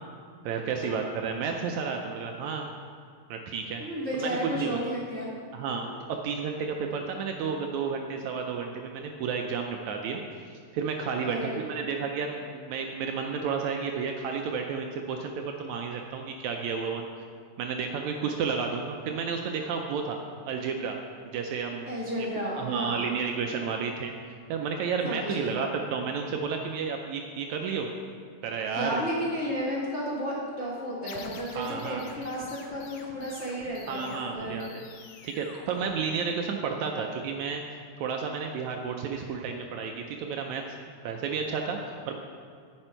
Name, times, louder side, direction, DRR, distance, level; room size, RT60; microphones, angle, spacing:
voice 1, 0.4-2.7 3.3-3.8 4.1-4.7 5.5-5.9 6.2-17.1 17.6-20.2 20.5-21.0 21.2-21.9 22.2-22.3 22.6-24.1 24.5-27.9 28.4-29.0 31.6-32.0 33.9-34.7 35.2-37.6 38.0-40.6 41.0-42.2, right 5 dB, 75° right, 3 dB, 1.8 m, -31 dB
voice 2, 3.8-5.3 5.8-5.9 11.2-11.6 21.8-23.1 25.0-25.6 28.7-34.7, equal, 30° left, -8 dB, 1.4 m, -33 dB
sound 1, 31.1-36.5, left 4 dB, 80° left, 1.2 m, -47 dB
10.0 x 7.7 x 4.4 m, 2.1 s
omnidirectional pair, 3.6 m